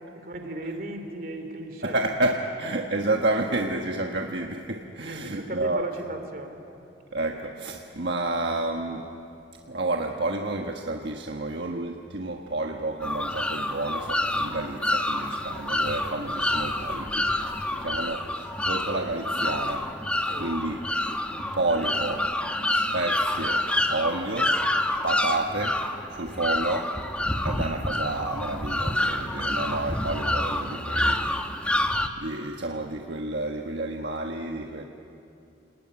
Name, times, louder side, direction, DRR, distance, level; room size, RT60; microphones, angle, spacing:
voice 1, 0.2-2.0 5.0-6.6 20.2-20.6 21.8-22.0 25.0-25.2 26.0-26.6 27.4-27.6, right 1 dB, 50° right, 6 dB, 3.0 m, -37 dB
voice 2, 1.8-5.9 7.1-9.1 9.7-17.3 17.7-19.9 20.4-20.8 21.4-22.3 22.7-24.6 25.0-25.8 26.1-26.9 27.4-34.8, right 2 dB, 70° right, 2 dB, 1.4 m, -30 dB
sound 1, 13.0-32.1, left 1 dB, 5° left, 1.1 m, -28 dB
29.5 x 19.5 x 9.7 m, 2.8 s
head